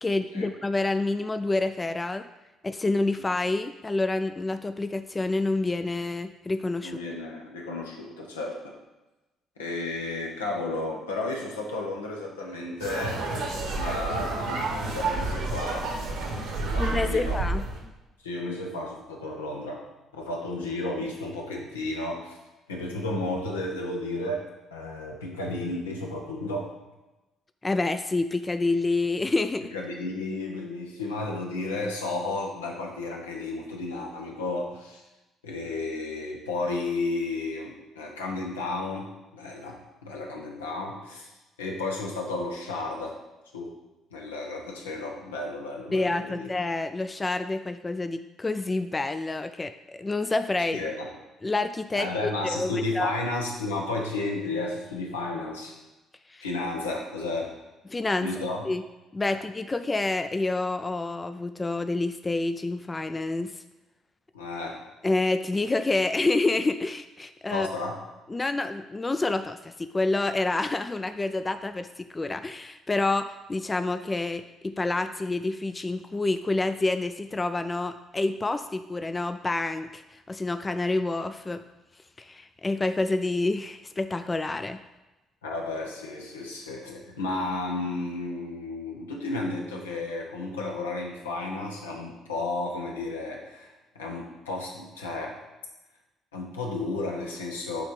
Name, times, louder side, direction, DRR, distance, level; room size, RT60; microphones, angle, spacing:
voice 1, 0.0-2.3 2.6-7.0 16.8-17.6 27.6-29.7 45.9-50.8 51.4-53.1 56.3-56.5 57.9-58.3 58.6-58.8 59.1-63.5 65.0-67.7 68.3-81.6 82.2-84.8, left 2 dB, 25° left, 10 dB, 0.3 m, -28 dB
voice 2, 6.8-8.7 9.6-13.3 13.7-15.9 16.6-17.4 18.2-19.9 20.2-22.3 22.7-26.7 29.7-35.0 35.4-39.1 39.3-41.3 41.6-43.2 43.5-43.7 44.1-46.5 50.7-51.1 51.9-55.7 56.4-57.5 58.2-58.7 59.3-59.4 64.3-64.8 67.5-68.0 85.4-93.7 93.9-95.4 96.3-97.8, left 2 dB, 90° left, 0 dB, 0.8 m, -33 dB
sound 1, 12.8-17.8, right 3 dB, 70° right, 1.2 m, -30 dB
6.0 x 3.2 x 5.2 m, 1.0 s
hypercardioid pair, 50°, 0 cm